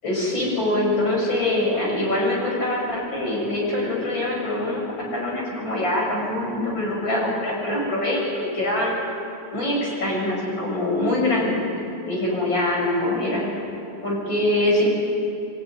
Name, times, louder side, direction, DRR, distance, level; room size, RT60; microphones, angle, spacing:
voice 1, 0.0-9.0 9.5-11.6 12.1-13.5 14.0-14.9, left 1 dB, 35° left, -2 dB, 7.5 m, -24 dB
25.5 x 17.5 x 9.6 m, 2.7 s
omnidirectional pair, 3.4 m